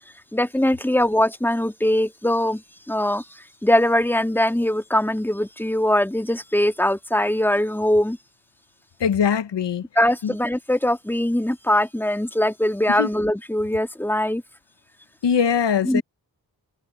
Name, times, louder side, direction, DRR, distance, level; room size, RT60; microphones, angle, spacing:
voice 1, 0.3-2.6 2.9-3.2 3.6-8.2 10.0-14.4 15.9-16.0, left 1 dB, 5° left, 2.3 m, -21 dB
voice 2, 9.0-9.8 10.2-10.3 13.0-13.1 15.2-16.0, left 7 dB, 80° left, 1.5 m, -21 dB
cardioid pair, 45°, 42 cm